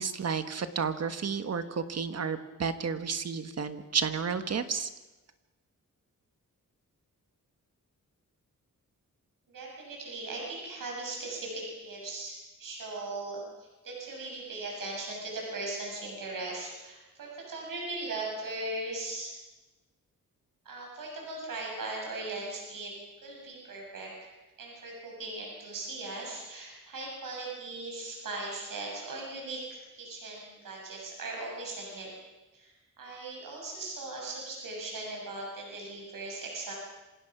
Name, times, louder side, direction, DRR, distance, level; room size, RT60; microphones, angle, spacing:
voice 1, 0.0-4.9, right 6 dB, 50° right, 9 dB, 1.6 m, -31 dB
voice 2, 9.5-19.3 20.7-22.9 23.2-24.1 24.6-29.6 29.9-32.1 32.5-36.7, right 2 dB, 90° right, -1 dB, 7.0 m, -39 dB
27.5 x 26.5 x 6.1 m, 1.1 s
wide cardioid pair, 180°, 32 cm